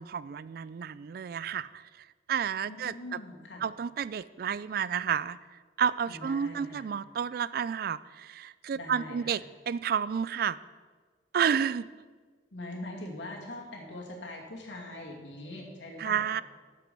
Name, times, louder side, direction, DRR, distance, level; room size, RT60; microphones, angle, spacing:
voice 1, 0.0-3.2 3.6-5.4 5.8-10.6 11.3-11.8 16.0-16.4, right 7 dB, 55° right, 17 dB, 0.3 m, -31 dB
voice 2, 2.6-3.6 6.1-6.9 8.7-9.3 12.5-16.3, left 1 dB, 85° left, 0 dB, 2.3 m, -42 dB
12.5 x 7.5 x 5.2 m, 1.5 s
head